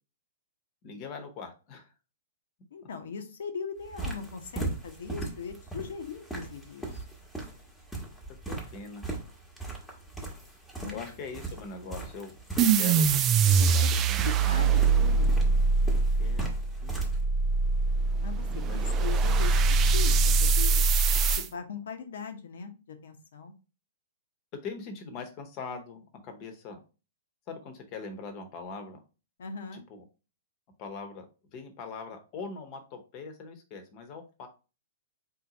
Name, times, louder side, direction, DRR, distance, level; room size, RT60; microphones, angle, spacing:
voice 1, 0.8-1.9 8.5-9.0 10.9-12.3 12.6-13.1 13.7-15.0 16.2-16.5 16.8-17.1 18.7-18.9 24.6-26.8 27.5-29.0 29.7-30.0 30.8-31.2 31.5-34.5, left 4 dB, 35° left, 7 dB, 1.0 m, -42 dB
voice 2, 2.7-7.0 10.8-11.1 13.4-15.4 18.2-23.5 29.4-29.8, left 6 dB, 60° left, 8 dB, 0.8 m, -40 dB
sound 1, 3.8-17.2, right 2 dB, 5° left, 1.2 m, -39 dB
sound 2, 12.6-21.5, right 4 dB, 25° right, 0.4 m, -23 dB
4.2 x 2.8 x 4.1 m, 0.33 s
figure-of-eight pair, 110°, 0 cm